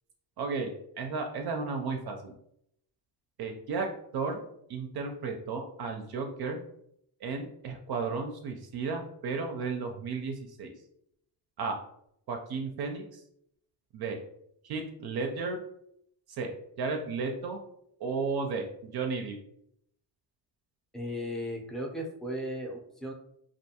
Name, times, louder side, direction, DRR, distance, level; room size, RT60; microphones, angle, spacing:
voice 1, 0.4-0.7 1.0-2.3 3.4-4.4 4.7-6.6 7.2-10.7 11.6-11.8 12.3-13.2 13.9-14.2 14.6-15.6 16.3-16.5 16.8-17.6 18.0-19.4, right 4 dB, 55° right, 3 dB, 0.5 m, -33 dB
voice 2, 20.9-23.1, equal, ahead, -1 dB, 0.5 m, -36 dB
2.5 x 2.2 x 2.8 m, 0.73 s
cardioid pair, 90°, 46 cm